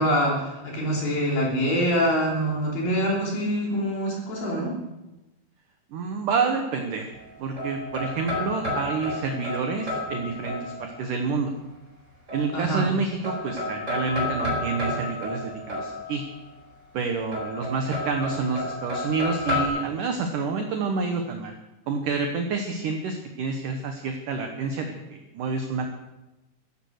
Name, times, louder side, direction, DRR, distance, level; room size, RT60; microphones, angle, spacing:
voice 1, 0.0-4.8 12.5-12.9, equal, 55° left, -2 dB, 4.8 m, -25 dB
voice 2, 5.9-7.1 7.4-11.5 12.3-16.2 16.9-21.5 21.9-25.9, right 4 dB, 65° right, 4 dB, 2.3 m, -28 dB
sound 1, 7.1-11.1 12.3-12.9 13.2-16.4 17.3-19.6, left 2 dB, 15° right, 4.8 m, -31 dB
15.0 x 14.5 x 6.6 m, 1.0 s
omnidirectional pair, 5.0 m